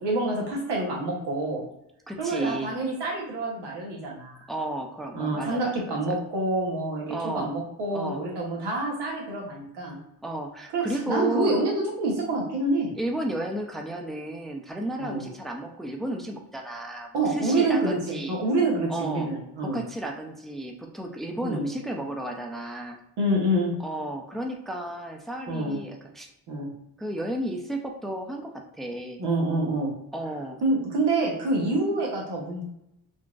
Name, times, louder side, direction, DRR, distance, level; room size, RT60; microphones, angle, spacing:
voice 1, 0.0-1.6 2.2-4.4 5.1-10.0 10.7-12.9 15.0-15.2 17.1-19.8 21.4-21.7 23.2-23.7 25.5-25.8 26.5-26.7 29.2-29.9 30.6-32.6, right 2 dB, 90° right, -2 dB, 1.0 m, -27 dB
voice 2, 2.1-2.7 4.5-6.2 7.1-7.5 7.9-8.2 10.2-11.6 13.0-18.4 18.9-19.3 19.6-23.0 23.8-26.3 27.0-29.2 30.1-30.6, right 1 dB, ahead, 2 dB, 0.5 m, -33 dB
3.8 x 2.4 x 2.4 m, 0.82 s
cardioid pair, 60°, 39 cm